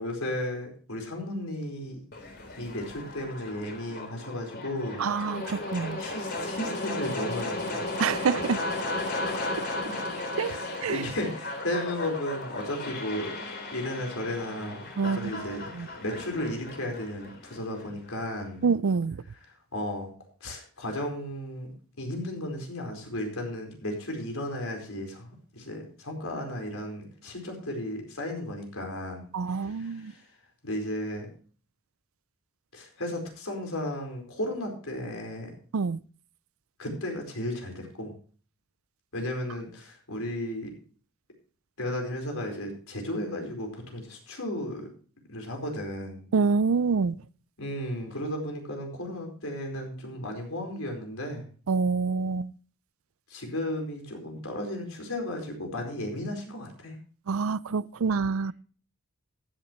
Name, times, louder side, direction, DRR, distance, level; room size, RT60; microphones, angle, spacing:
voice 1, 0.0-2.0 2.6-5.1 6.0-7.8 9.2-9.5 9.9-10.0 10.4-13.4 13.7-15.7 16.0-18.7 19.7-20.1 20.4-21.7 22.0-30.2 30.6-31.3 32.7-35.5 36.8-38.1 39.1-40.7 41.8-44.9 45.3-46.2 47.6-51.4 53.3-56.9, left 1 dB, 75° left, 4.6 m, -34 dB
sound 1, 2.1-18.1, left 2 dB, 50° left, 3.5 m, -35 dB
voice 2, 5.0-6.0 8.0-8.6 10.4-10.5 10.8-11.0 15.0-15.5 15.8-15.9 18.6-19.2 29.3-30.1 35.7-36.0 46.3-47.2 51.7-52.5 57.3-58.5, right 5 dB, 70° right, 0.5 m, -26 dB
15.0 x 11.5 x 3.1 m
head